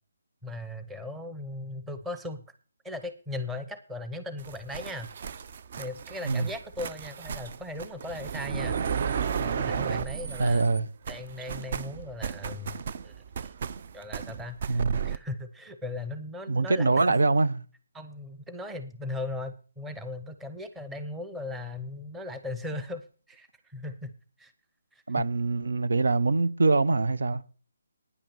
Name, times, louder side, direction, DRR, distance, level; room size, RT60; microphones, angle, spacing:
voice 1, 0.4-2.4 2.8-5.1 5.8-8.8 9.4-13.5 13.9-16.9 17.9-24.1 24.4-24.5 24.9-25.2, left 2 dB, 5° right, 0.8 m, -38 dB
sound 1, 4.4-10.8 11.0-15.2, right 6 dB, 40° right, 0.5 m, -34 dB
voice 2, 10.4-10.9 14.7-15.0 16.5-17.6 25.1-27.4, right 3 dB, 80° right, 0.8 m, -24 dB
9.7 x 8.9 x 6.9 m
hypercardioid pair, 165°, 0 cm